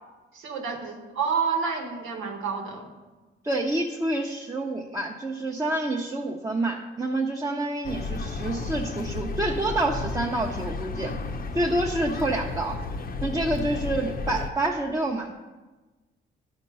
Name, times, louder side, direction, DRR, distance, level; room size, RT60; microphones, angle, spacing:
voice 1, 0.3-2.9, right 6 dB, 90° right, 2 dB, 1.3 m, -29 dB
voice 2, 3.4-11.1 11.5-12.8 13.2-15.3, right 2 dB, 15° right, -1 dB, 0.8 m, -28 dB
sound 1, 7.8-14.5, left 3 dB, 50° left, 0.7 m, -33 dB
11.5 x 4.4 x 5.4 m, 1.2 s
cardioid pair, 80°, 20 cm